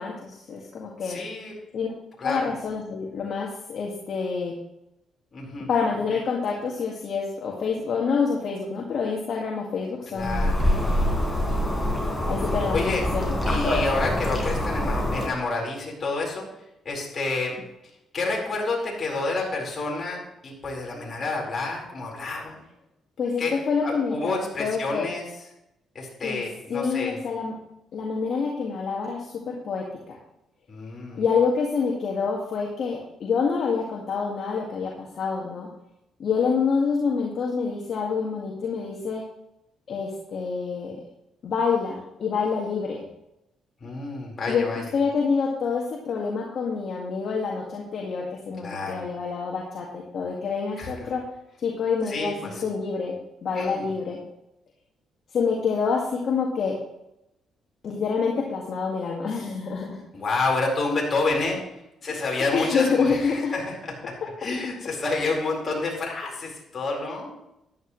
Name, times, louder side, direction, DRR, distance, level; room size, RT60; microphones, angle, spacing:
voice 1, 0.0-1.2 1.7-1.9 2.2-4.6 5.7-10.6 12.2-13.4 23.2-25.1 26.2-26.4 26.7-27.6 27.9-30.2 31.2-35.7 36.2-39.2 39.9-41.0 41.4-43.0 44.5-51.2 51.6-54.2 55.3-56.8 57.8-60.0 62.1-63.6, left 5 dB, 60° left, -2 dB, 1.9 m, -27 dB
voice 2, 1.0-1.5 2.2-2.5 5.3-5.7 10.1-10.6 12.7-13.0 13.5-16.5 16.8-17.5 18.1-22.6 23.4-25.2 25.9-27.2 30.7-31.2 43.8-44.8 48.6-49.0 50.8-50.9 52.0-52.6 53.5-53.9 60.1-61.6 62.0-67.3, left 3 dB, 40° left, -2 dB, 4.4 m, -29 dB
sound 1, 10.2-15.3, left 1 dB, 10° left, 4.1 m, -25 dB
13.5 x 11.0 x 3.2 m, 0.87 s
cardioid pair, 90°, 0 cm